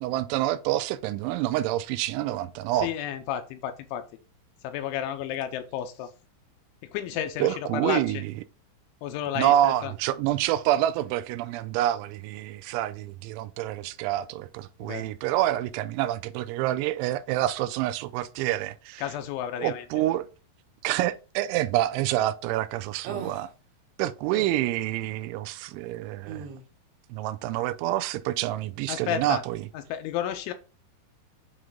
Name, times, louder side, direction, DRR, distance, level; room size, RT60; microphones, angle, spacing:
voice 1, 0.0-2.9 7.4-8.3 9.4-19.0 19.6-20.3 20.8-23.5 24.0-26.5 27.1-29.6, right 13 dB, 85° right, 2.9 m, -27 dB
voice 2, 2.8-4.1 4.6-6.1 6.8-8.2 9.0-9.9 14.8-15.1 19.0-19.9 28.9-29.4 29.7-30.5, left 10 dB, 85° left, 3.1 m, -32 dB
sound 1, 23.1-23.5 24.3-24.5 26.3-26.7, right 6 dB, 70° right, 3.0 m, -37 dB
8.7 x 3.2 x 3.6 m
omnidirectional pair, 5.4 m